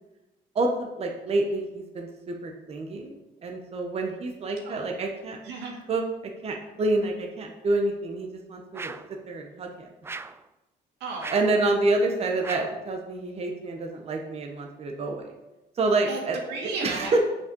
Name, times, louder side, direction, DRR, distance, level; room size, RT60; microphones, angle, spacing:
voice 1, 0.5-3.2 3.4-5.4 5.9-6.0 6.4-8.9 9.3-9.9 11.3-15.3 15.8-16.4 16.8-17.2, right 2 dB, 35° right, 2 dB, 1.1 m, -27 dB
voice 2, 5.4-5.8 11.0-11.4 16.1-17.2, right 3 dB, 90° right, -1 dB, 2.2 m, -34 dB
sound 1, 8.7-9.2 10.0-10.5 11.2-11.6 12.4-12.8, right 4 dB, 15° right, 0.3 m, -38 dB
7.7 x 5.5 x 5.4 m, 1.0 s
cardioid pair, 110°, 17 cm